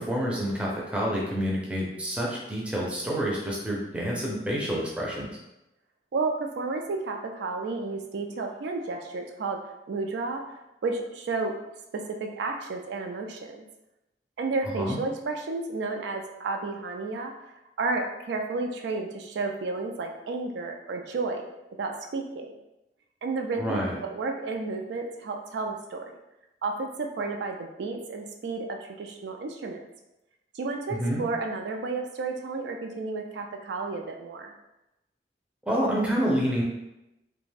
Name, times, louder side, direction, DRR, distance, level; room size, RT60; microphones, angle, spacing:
voice 1, 0.0-5.4 14.7-15.0 23.6-23.9 30.9-31.2 35.7-36.6, equal, 5° right, -4 dB, 0.4 m, -28 dB
voice 2, 6.1-9.6 9.9-10.4 10.8-11.5 11.9-13.6 14.4-17.3 17.8-21.4 21.8-22.5 23.2-26.1 26.6-29.8 30.5-34.5, right 3 dB, 80° right, 3 dB, 0.3 m, -32 dB
2.4 x 2.2 x 3.2 m, 0.93 s
head